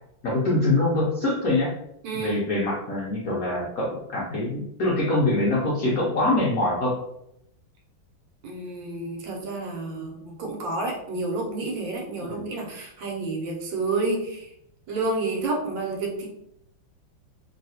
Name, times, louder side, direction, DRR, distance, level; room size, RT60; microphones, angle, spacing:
voice 1, 0.2-1.7 2.1-6.9 12.2-12.4, left 2 dB, 70° left, -5 dB, 0.8 m, -24 dB
voice 2, 2.0-2.4 8.4-14.5 14.9-16.3, right 3 dB, 70° right, 0 dB, 1.3 m, -30 dB
3.1 x 2.7 x 2.7 m, 0.77 s
omnidirectional pair, 2.2 m